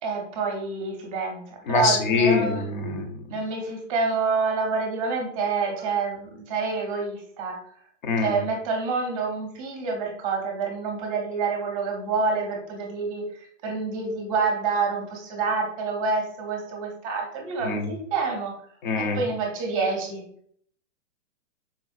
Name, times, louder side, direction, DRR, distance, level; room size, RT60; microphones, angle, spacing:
voice 1, 0.0-2.6 3.3-7.6 8.2-18.5 19.0-20.2, right 4 dB, 25° right, 2 dB, 0.6 m, -27 dB
voice 2, 1.7-3.1 8.0-8.4 17.6-17.9 18.8-19.2, left 4 dB, 40° left, 5 dB, 0.6 m, -24 dB
4.2 x 2.0 x 2.5 m, 0.63 s
hypercardioid pair, 140°, 39 cm